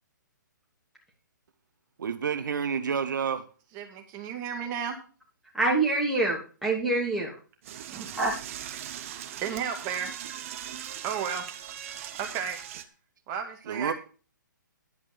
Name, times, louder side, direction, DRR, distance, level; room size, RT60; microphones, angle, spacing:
voice 1, 2.0-3.4 13.7-13.9, right 6 dB, 70° right, 10 dB, 1.0 m, -29 dB
voice 2, 3.7-5.0 7.9-8.1 8.8-10.1 11.0-11.5 12.1-12.6 13.3-13.9, right 7 dB, 25° right, 4 dB, 2.2 m, -34 dB
voice 3, 5.5-7.4 8.2-8.3, right 2 dB, ahead, -5 dB, 2.9 m, -25 dB
Door / Toilet flush, 7.6-12.8, right 10 dB, 40° right, 0.9 m, -40 dB
11.0 x 5.1 x 6.9 m, 0.37 s
hypercardioid pair, 145°, 11 cm